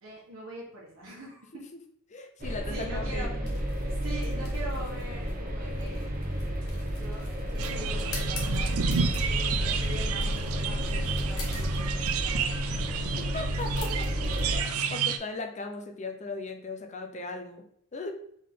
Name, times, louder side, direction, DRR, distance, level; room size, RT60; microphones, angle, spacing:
voice 1, 0.0-1.6 2.4-3.3 4.0-6.1 6.9-12.7, right 1 dB, 65° right, -5 dB, 1.2 m, -43 dB
voice 2, 2.1-3.6 9.1-9.3 12.9-13.9 14.5-17.6 17.9-18.1, left 3 dB, 35° left, 4 dB, 0.5 m, -38 dB
sound 1, 2.4-14.6, equal, 40° right, 0.8 m, -31 dB
sound 2, 3.4-14.4, left 4 dB, 85° left, 1.2 m, -48 dB
sound 3, 7.6-15.2, right 5 dB, 85° right, 0.5 m, -31 dB
3.7 x 3.7 x 3.7 m, 0.67 s
head